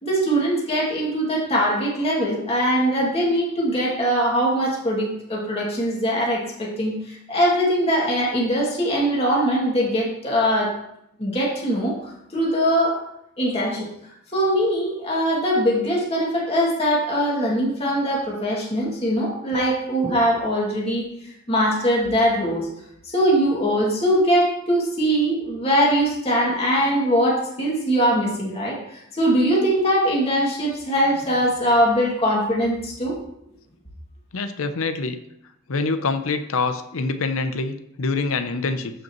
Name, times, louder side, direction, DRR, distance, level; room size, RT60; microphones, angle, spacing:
voice 1, 0.0-10.7 11.2-12.0 12.3-13.0 13.4-13.9 14.3-21.1 21.5-22.7 23.1-33.2, equal, 30° left, -4 dB, 2.4 m, -21 dB
voice 2, 34.3-35.2 35.7-38.9, left 3 dB, 75° left, 9 dB, 0.7 m, -25 dB
14.0 x 5.2 x 3.1 m, 0.78 s
head